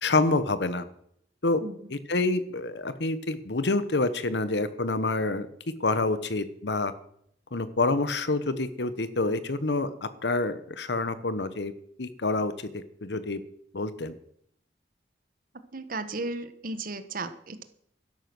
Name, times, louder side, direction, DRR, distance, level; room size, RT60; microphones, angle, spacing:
voice 1, 0.0-0.8 1.4-1.6 1.9-5.5 5.8-6.9 7.5-11.7 12.0-13.4 13.7-14.1, left 3 dB, 70° left, 13 dB, 1.1 m, -27 dB
voice 2, 15.7-17.6, right 2 dB, 50° right, 11 dB, 1.2 m, -35 dB
13.0 x 10.5 x 6.1 m, 0.69 s
head